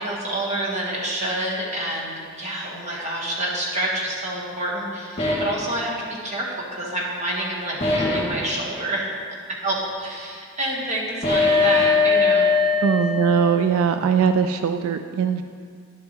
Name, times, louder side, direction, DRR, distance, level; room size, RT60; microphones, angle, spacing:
voice 1, 0.0-9.1 9.6-12.5, right 1 dB, 35° right, -3 dB, 1.4 m, -28 dB
sound 1, 5.2-5.6 7.8-8.4 11.2-13.7, left 4 dB, 35° left, 1.8 m, -20 dB
voice 2, 12.8-15.4, right 7 dB, 85° right, 9 dB, 0.3 m, -20 dB
10.5 x 6.9 x 3.1 m, 2.1 s
head